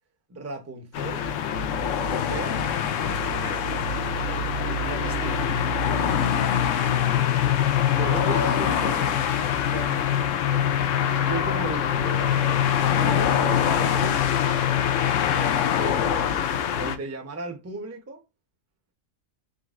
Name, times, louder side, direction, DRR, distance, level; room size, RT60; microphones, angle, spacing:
voice 1, 0.3-1.2 2.1-2.6 3.3-3.8 8.0-9.4 11.3-12.4 15.2-16.3 16.8-18.2, right 3 dB, 15° right, 0.6 m, -35 dB
sound 1, 0.9-17.0, left 8 dB, 70° left, 0.9 m, -24 dB
voice 2, 4.8-5.7 8.1-8.2 9.7-10.1 13.0-14.4, right 4 dB, 55° right, 0.8 m, -35 dB
4.0 x 3.9 x 2.4 m
omnidirectional pair, 1.4 m